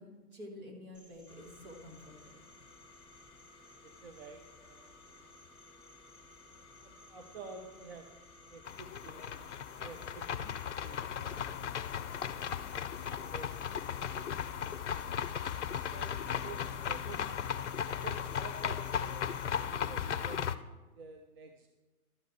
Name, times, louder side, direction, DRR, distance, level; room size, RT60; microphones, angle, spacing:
voice 1, 0.0-2.4, left 1 dB, 65° right, -2 dB, 3.2 m, -49 dB
Cricket, 0.9-19.6, equal, 10° right, 0.7 m, -63 dB
sound 1, 1.3-20.6, left 3 dB, 10° left, 1.0 m, -57 dB
voice 2, 3.8-5.3 6.5-8.1 8.5-9.5 9.8-11.5 11.8-12.5 13.3-14.6 15.6-20.7 20.9-21.7, right 4 dB, 40° right, 4 dB, 0.8 m, -51 dB
sound 2, 8.7-20.6, left 8 dB, 50° left, 0.5 m, -36 dB
12.0 x 8.2 x 4.6 m, 1.2 s
figure-of-eight pair, 120°, 46 cm